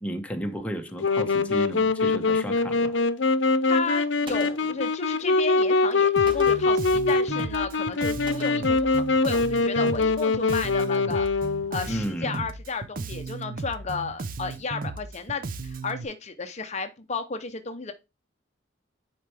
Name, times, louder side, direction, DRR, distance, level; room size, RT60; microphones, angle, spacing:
voice 1, 0.0-3.0 11.9-12.4, equal, 10° left, 1.1 m, -33 dB
Wind instrument woodwind instrument, 1.0-11.9, left 3 dB, 85° left, 0.7 m, -23 dB
voice 2, 3.7-11.4 11.7-17.9, left 4 dB, 40° left, 0.7 m, -33 dB
Gunshot gunfire, 4.3-4.9 6.3-6.8 8.3-8.8, equal, 30° right, 2.3 m, -42 dB
Bass guitar, 6.2-16.0, right 3 dB, 50° right, 0.6 m, -35 dB
10.0 x 4.5 x 3.3 m
head